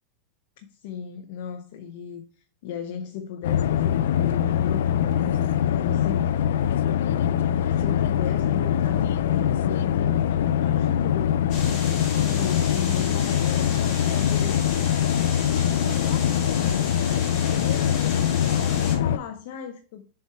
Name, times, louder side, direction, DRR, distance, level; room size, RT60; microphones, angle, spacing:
voice 1, 0.7-2.3 2.6-6.3 7.7-14.7 15.5-16.9 17.4-20.0, left 8 dB, 55° left, 0.7 m, -36 dB
sound 1, 3.4-19.2, left 9 dB, 85° left, 0.4 m, -23 dB
sound 2, 11.5-19.0, left 4 dB, 30° left, 2.4 m, -35 dB
7.2 x 4.5 x 4.4 m
supercardioid pair, 175°, 0 cm